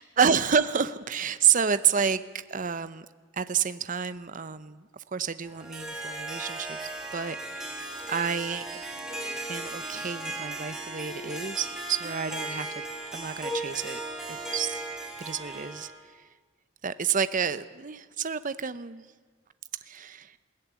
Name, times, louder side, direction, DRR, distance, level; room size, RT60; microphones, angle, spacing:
voice 1, 0.0-3.1 3.3-6.8 7.1-8.6 9.5-12.8 13.1-14.0 14.3-14.8 15.2-16.3 16.8-19.1 19.8-20.4, right 7 dB, 40° right, 13 dB, 0.7 m, -29 dB
Harp, 5.4-16.0, right 1 dB, 5° right, 3.9 m, -36 dB
21.0 x 17.0 x 9.5 m, 1.5 s
head